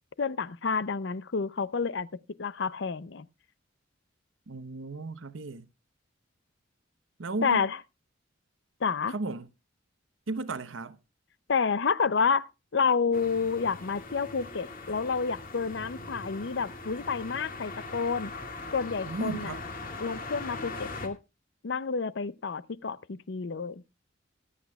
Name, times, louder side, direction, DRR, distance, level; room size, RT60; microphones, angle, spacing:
voice 1, 0.2-2.1 2.4-3.3 7.4-7.8 8.8-9.1 11.5-18.3 18.7-19.5 20.0-21.2 21.6-23.8, left 5 dB, 60° left, 0.6 m, -29 dB
voice 2, 4.5-5.7 7.2-7.7 9.1-9.5 10.3-11.0 19.1-19.6, right 3 dB, 80° right, 0.9 m, -34 dB
sound 1, 13.1-21.1, left 3 dB, 45° left, 2.1 m, -41 dB
24.0 x 8.2 x 2.3 m
head